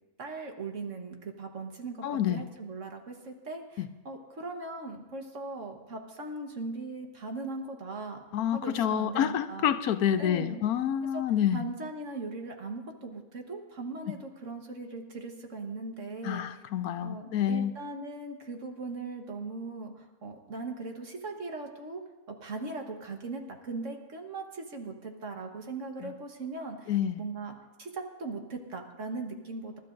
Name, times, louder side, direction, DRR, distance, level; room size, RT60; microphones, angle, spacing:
voice 1, 0.2-8.2 8.5-9.7 10.2-10.6 11.1-11.2 11.5-16.4 17.0-22.0 22.3-26.9 27.2-29.8, right 3 dB, 60° right, 3 dB, 1.7 m, -39 dB
voice 2, 2.0-2.4 3.8-3.9 8.3-11.6 16.2-17.7 26.0-26.1 26.9-27.2, left 10 dB, 80° left, 11 dB, 1.1 m, -28 dB
27.5 x 12.5 x 2.6 m, 1.1 s
omnidirectional pair, 1.5 m